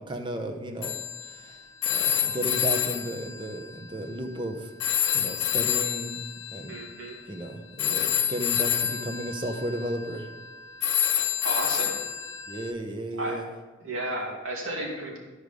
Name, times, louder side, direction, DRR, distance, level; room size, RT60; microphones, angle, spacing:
voice 1, 0.0-1.6 1.9-4.7 5.1-6.2 6.5-6.7 7.3-10.3 12.5-13.5, right 1 dB, 25° right, 4 dB, 0.8 m, -34 dB
Telephone, 0.8-4.5 4.8-12.7, left 10 dB, 65° left, 0.6 m, -29 dB
voice 2, 6.7-7.2 11.4-12.0 13.1-13.4 13.8-15.2, right 1 dB, 85° right, -2 dB, 2.4 m, -33 dB
13.0 x 4.9 x 5.2 m, 1.3 s
head